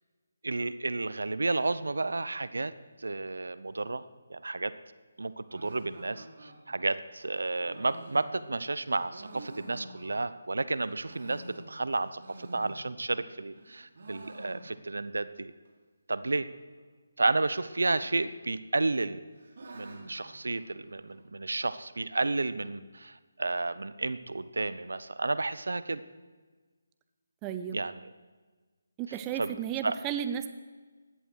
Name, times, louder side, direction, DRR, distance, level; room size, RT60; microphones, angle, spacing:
voice 1, 0.4-2.7 3.0-4.0 4.3-4.7 5.2-15.5 16.1-16.5 17.2-19.2 19.7-26.0 27.7-28.0 29.4-29.5 29.8-30.0, right 3 dB, 75° right, 14 dB, 0.8 m, -31 dB
sound 1, 5.5-10.5 10.9-13.2 13.5-15.1 15.3-15.4 15.7-15.8 16.4-16.8 17.9-18.5 18.8-21.3, right 1 dB, 55° right, 3.1 m, -49 dB
voice 2, 27.4-27.8 29.0-30.5, right 9 dB, 15° right, 9 dB, 0.7 m, -33 dB
16.5 x 11.0 x 6.4 m, 1.4 s
figure-of-eight pair, 155°, 0 cm